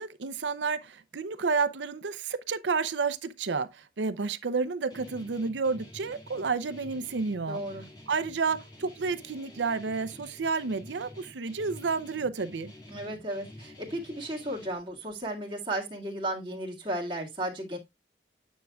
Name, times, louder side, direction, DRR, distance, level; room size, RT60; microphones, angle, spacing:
voice 1, 0.0-7.6 8.1-12.7, right 4 dB, 85° right, 0.6 m, -30 dB
Guitar, 4.9-14.7, left 1 dB, 25° left, 1.9 m, -49 dB
voice 2, 7.4-7.8 12.9-17.8, right 1 dB, 25° right, 2.0 m, -34 dB
9.3 x 6.3 x 2.3 m
head